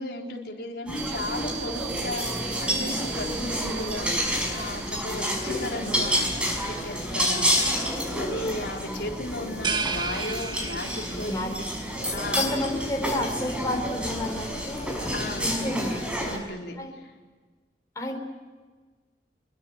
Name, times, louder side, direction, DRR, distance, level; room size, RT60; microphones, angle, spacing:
voice 1, 0.0-6.3 6.7-11.6 12.1-12.4 15.1-15.5 16.2-17.1, left 1 dB, 70° left, 0 dB, 4.1 m, -35 dB
sound 1, 0.9-16.4, equal, 5° right, 5.4 m, -29 dB
sound 2, 1.0-6.8, right 12 dB, 75° right, 2.9 m, -40 dB
sound 3, 9.6-11.4, right 5 dB, 25° right, 1.3 m, -31 dB
voice 2, 12.0-15.0 15.4-16.0 16.8-16.9 18.0-18.2, left 1 dB, 20° left, 2 dB, 4.2 m, -30 dB
26.0 x 22.5 x 8.9 m, 1.4 s
head